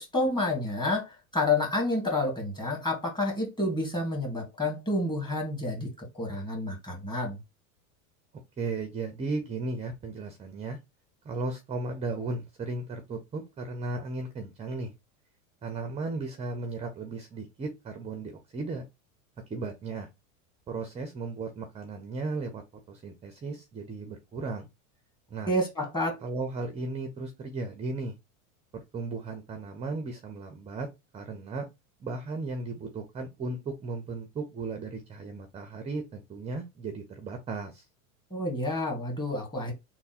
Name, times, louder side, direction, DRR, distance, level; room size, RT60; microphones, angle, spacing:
voice 1, 0.0-7.4 25.5-26.2 38.3-39.7, left 2 dB, 10° left, 1.6 m, -29 dB
voice 2, 8.6-10.8 11.2-14.9 15.6-18.9 19.5-20.1 20.7-22.6 22.9-24.7 25.3-25.5 26.2-28.2 28.7-30.9 31.1-31.7 32.0-37.9, right 3 dB, 15° right, 0.5 m, -35 dB
3.4 x 2.1 x 4.1 m
hypercardioid pair, 110°, 43 cm